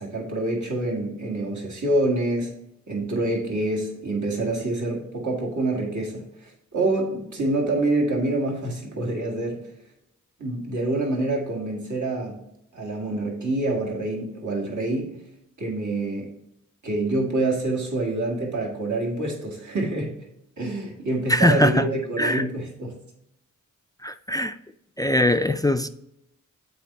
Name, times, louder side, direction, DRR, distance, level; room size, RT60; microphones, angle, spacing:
voice 1, 0.0-2.5 2.9-9.7 10.4-12.4 12.7-15.2 15.6-16.3 16.8-20.2 20.6-23.0, right 2 dB, 65° right, -1 dB, 1.8 m, -26 dB
voice 2, 21.3-21.9 22.2-22.4 24.0-24.6 25.0-25.9, left 1 dB, 10° left, 10 dB, 0.3 m, -21 dB
7.7 x 4.3 x 4.1 m, 0.80 s
cardioid pair, 45°, 32 cm